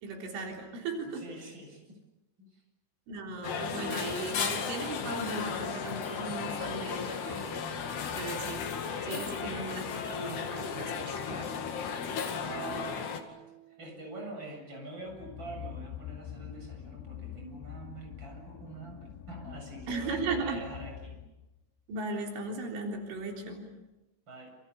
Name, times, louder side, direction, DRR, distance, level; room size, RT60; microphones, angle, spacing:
voice 1, 0.0-1.2 3.1-7.6 8.1-8.6 9.0-11.5 19.9-20.6 21.9-23.7, right 3 dB, 85° right, 1 dB, 6.1 m, -37 dB
voice 2, 1.1-2.0 2.4-2.6 12.4-21.2 24.3-24.5, right 2 dB, 25° right, 3 dB, 8.3 m, -45 dB
sound 1, 3.4-13.2, left 6 dB, 65° left, 4.2 m, -35 dB
sound 2, 12.5-14.3, right 10 dB, 45° right, 2.9 m, -46 dB
sound 3, 15.0-21.6, left 10 dB, 85° left, 4.0 m, -45 dB
28.5 x 28.0 x 7.1 m, 1.0 s
omnidirectional pair, 5.3 m